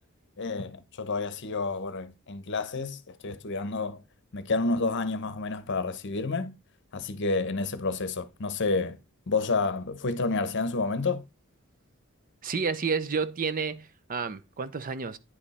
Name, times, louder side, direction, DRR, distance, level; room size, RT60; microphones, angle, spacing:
voice 1, 0.4-4.0 4.3-6.5 6.9-9.0 9.3-11.2, left 3 dB, 60° left, 0.8 m, -29 dB
voice 2, 12.4-15.2, right 5 dB, 40° right, 0.6 m, -30 dB
9.8 x 5.2 x 4.1 m
head